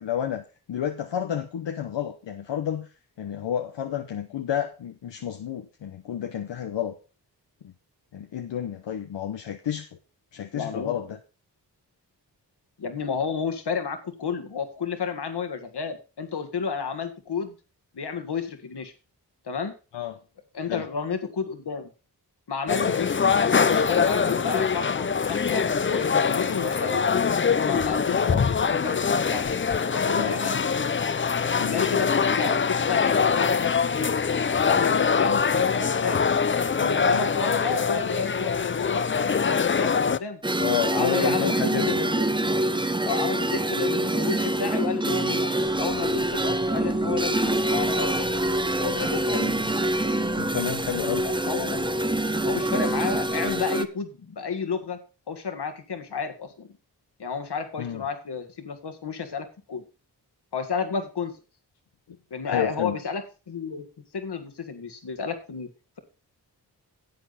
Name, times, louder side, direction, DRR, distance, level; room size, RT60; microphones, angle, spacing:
voice 1, 0.0-2.9 3.2-6.9 7.6-7.7 8.1-9.9 10.3-11.2 19.9-20.2 20.7-20.8 22.8-23.0 28.1-28.5 30.2-30.5 31.6-31.8 37.1-37.2 40.6-42.0 49.3-49.7 50.4-51.3 57.8-58.0 62.5-63.0, left 9 dB, 85° left, 6 dB, 0.9 m, -30 dB
voice 2, 10.5-11.0 12.8-17.6 17.9-18.9 19.5-19.7 20.5-21.9 22.5-25.6 25.9-27.1 27.6-29.5 29.8-30.6 31.6-34.2 34.5-36.2 36.8-40.4 40.9-42.3 43.0-45.5 45.8-48.4 48.8-49.5 51.2-52.0 52.4-55.0 55.3-56.7 57.2-59.8 60.5-61.3 62.3-63.9 64.1-65.7, left 5 dB, 70° left, 8 dB, 1.9 m, -31 dB
sound 1, 22.7-40.2, left 6 dB, 30° left, 0.5 m, -23 dB
sound 2, 40.4-53.8, right 1 dB, 10° right, 0.7 m, -25 dB
sound 3, 45.6-53.7, right 3 dB, 25° right, 1.1 m, -45 dB
10.5 x 7.9 x 4.1 m, 0.33 s
cardioid pair, 50°, 42 cm